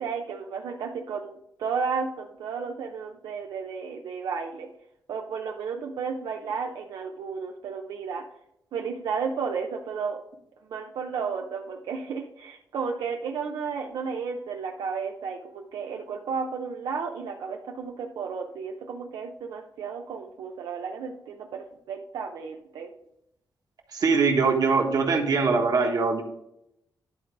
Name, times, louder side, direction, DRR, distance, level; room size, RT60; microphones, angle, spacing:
voice 1, 0.0-4.7 5.1-8.2 8.7-10.2 10.7-22.9, right 5 dB, 90° right, 2 dB, 0.6 m, -33 dB
voice 2, 23.9-26.2, right 4 dB, 60° right, 2 dB, 1.5 m, -22 dB
11.0 x 4.0 x 4.7 m, 0.80 s
cardioid pair, 110°, 7 cm